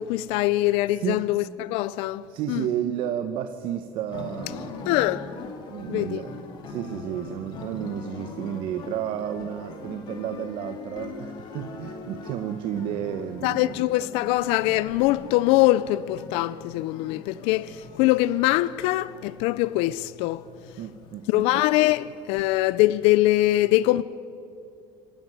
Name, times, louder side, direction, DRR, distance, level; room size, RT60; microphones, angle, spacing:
voice 1, 0.0-2.6 4.9-5.3 5.9-6.2 13.4-20.4 21.3-24.0, left 17 dB, 75° left, 0.5 m, -23 dB
voice 2, 0.9-1.2 2.3-4.9 5.7-13.8 20.8-21.6, right 10 dB, 60° right, 1.0 m, -32 dB
sound 1, 4.1-22.4, left 3 dB, 50° left, 2.5 m, -41 dB
26.0 x 12.0 x 9.3 m
cardioid pair, 145°, 10 cm